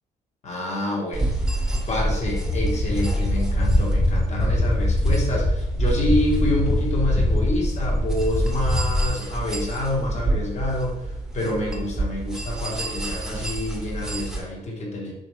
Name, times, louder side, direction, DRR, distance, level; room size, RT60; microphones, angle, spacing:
voice 1, 0.4-1.3 1.9-11.1 11.3-15.1, left 1 dB, 40° left, -2 dB, 1.1 m, -27 dB
sound 1, 1.1-14.4, right 2 dB, 5° right, 0.9 m, -30 dB
sound 2, 1.3-9.1, left 1 dB, 15° left, 0.4 m, -23 dB
3.0 x 2.5 x 3.0 m, 0.91 s
hypercardioid pair, 55°, 18 cm